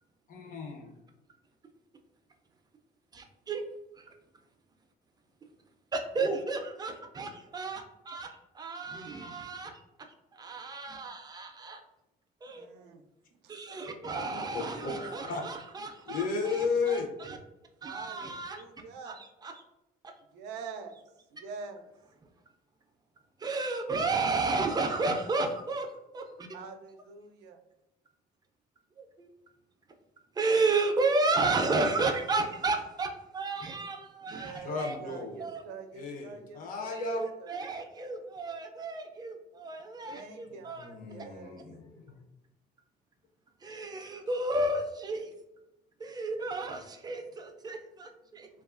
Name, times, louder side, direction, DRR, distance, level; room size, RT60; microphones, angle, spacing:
voice 1, 0.3-0.9 6.2-6.4 13.7-15.4 16.1-17.1 34.3-35.4 35.9-37.2 40.5-42.2, left 4 dB, 55° left, 2 dB, 0.6 m, -35 dB
voice 2, 3.1-3.6 4.0-4.1 5.9-9.7 10.4-11.8 12.4-12.9 13.5-17.4 17.8-18.6 19.1-19.2 19.4-19.5 23.4-25.9 26.1-26.5 29.0-29.3 30.4-34.5 34.8-35.0 35.4-35.6 36.9-40.9 43.6-45.3 46.0-48.5, right 3 dB, 25° right, 4 dB, 0.4 m, -32 dB
voice 3, 12.5-13.0 13.4-13.5 14.1-15.2 17.8-19.2 20.3-21.0 21.3-21.9 24.0-24.6 26.5-27.6 34.2-37.7 40.0-41.6, right 5 dB, 85° right, 6 dB, 0.4 m, -46 dB
2.9 x 2.3 x 2.4 m, 0.95 s
cardioid pair, 110°, 17 cm